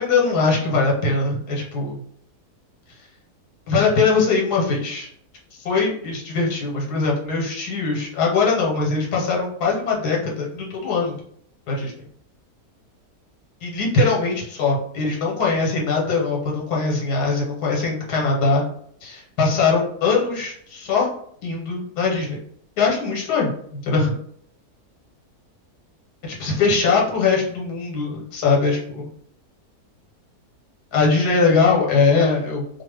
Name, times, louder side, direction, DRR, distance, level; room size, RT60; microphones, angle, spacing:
voice 1, 0.0-2.0 3.7-5.1 5.6-11.2 11.7-11.9 13.6-18.6 19.0-21.1 21.4-22.4 22.8-24.2 26.2-29.1 30.9-32.8, left 4 dB, 90° left, -3 dB, 1.3 m, -21 dB
2.4 x 2.4 x 3.2 m, 0.65 s
omnidirectional pair, 1.6 m